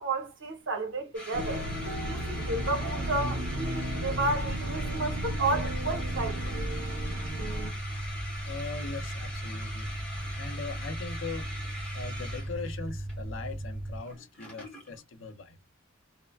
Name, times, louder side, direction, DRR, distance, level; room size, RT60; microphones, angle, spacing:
voice 1, 0.0-1.7 2.0-6.6, right 2 dB, 60° right, 0.9 m, -32 dB
sound 1, 1.1-15.0, left 1 dB, 5° left, 1.0 m, -43 dB
sound 2, 1.3-7.7, right 1 dB, 85° right, 0.7 m, -34 dB
sound 3, 4.0-14.0, right 1 dB, 25° right, 1.0 m, -37 dB
voice 2, 8.5-11.5 11.9-15.6, left 4 dB, 70° left, 0.6 m, -40 dB
3.2 x 2.1 x 2.2 m
head